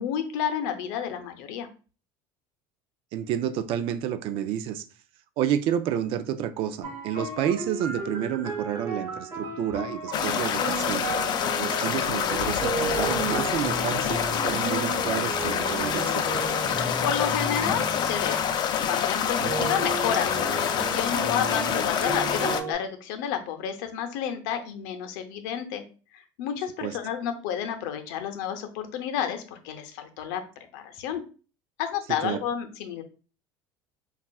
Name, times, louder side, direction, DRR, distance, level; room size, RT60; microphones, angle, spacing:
voice 1, 0.0-1.7 17.0-18.4 18.9-25.8 26.1-30.4 30.7-31.2 31.8-33.0, left 9 dB, 90° left, 0.6 m, -31 dB
voice 2, 3.1-4.8 5.4-11.0 11.6-16.2 19.4-19.7 26.8-27.0 32.2-32.4, right 10 dB, 60° right, 0.4 m, -30 dB
sound 1, 6.8-18.6 19.5-22.7, right 3 dB, 40° right, 1.0 m, -34 dB
sound 2, 10.1-22.6, left 8 dB, 45° left, 0.4 m, -27 dB
sound 3, 12.0-14.8, left 4 dB, 80° right, 0.9 m, -43 dB
5.3 x 2.4 x 2.2 m
cardioid pair, 130°, 10 cm